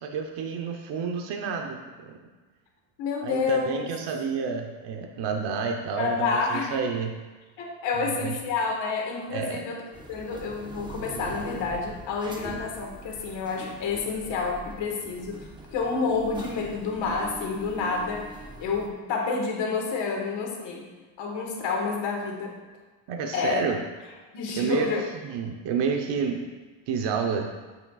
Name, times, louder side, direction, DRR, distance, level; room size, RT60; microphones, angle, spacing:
voice 1, 0.0-1.8 2.1-2.2 3.2-7.1 8.2-8.3 9.3-9.6 23.1-23.8 24.6-24.9 25.2-26.5 26.9-27.5, right 5 dB, 60° right, 2 dB, 0.9 m, -29 dB
voice 2, 3.0-3.8 5.9-6.8 7.6-9.8 10.1-18.3 18.6-20.9 21.2-22.6 23.3-23.6 24.3-25.1, left 4 dB, 65° left, 0 dB, 1.7 m, -29 dB
sound 1, 9.9-18.9, right 2 dB, 10° right, 0.5 m, -42 dB
8.6 x 7.6 x 2.4 m, 1.3 s
cardioid pair, 150°, 47 cm